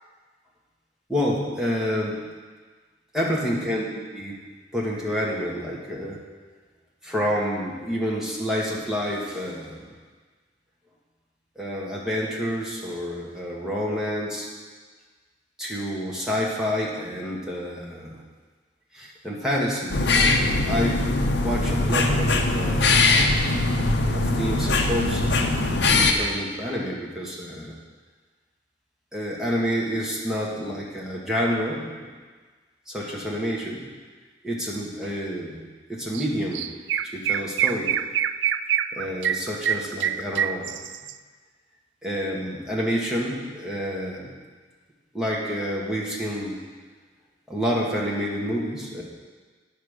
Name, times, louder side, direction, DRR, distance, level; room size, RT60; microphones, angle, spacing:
voice 1, 1.1-2.2 3.1-3.9 4.1-4.4 4.7-6.2 7.0-9.9 11.5-14.5 15.6-18.2 18.9-20.0 20.6-21.1 21.4-23.1 24.1-27.7 29.1-32.1 32.9-33.9 34.4-35.6 35.9-36.7 37.0-37.9 38.9-40.7 42.0-44.3 45.1-46.6 47.5-49.0, equal, 5° right, -5 dB, 1.5 m, -28 dB
sound 1, 19.9-26.1, left 3 dB, 65° left, 0.7 m, -21 dB
Chirp tweet, 36.1-36.3 36.5-41.1, right 9 dB, 75° right, 0.3 m, -25 dB
9.2 x 5.2 x 6.5 m, 1.4 s
head